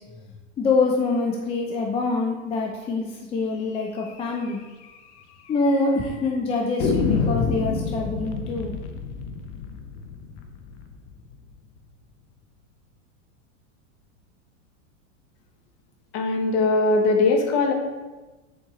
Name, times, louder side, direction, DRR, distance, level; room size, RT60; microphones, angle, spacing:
voice 1, 0.6-4.7 5.5-8.7, left 3 dB, 15° left, 0 dB, 0.5 m, -25 dB
sound 1, 4.0-4.1 4.4-4.5 4.8-4.9 5.6-6.1 6.8-11.6, left 5 dB, 60° left, 0.9 m, -28 dB
voice 2, 16.1-17.7, left 3 dB, 45° left, 3 dB, 1.2 m, -20 dB
7.1 x 4.5 x 3.7 m, 1.2 s
supercardioid pair, 135°, 39 cm